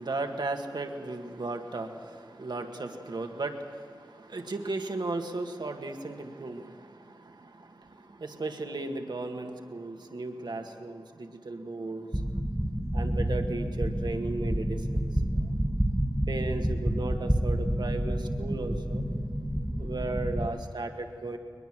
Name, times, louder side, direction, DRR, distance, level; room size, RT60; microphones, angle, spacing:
voice 1, 0.0-12.2 12.9-15.1 16.3-19.1 19.8-21.4, right 2 dB, 80° right, 4 dB, 1.9 m, -36 dB
sound 1, 12.1-20.5, equal, 10° right, 1.4 m, -29 dB
22.5 x 21.0 x 7.7 m, 2.2 s
cardioid pair, 45°, 7 cm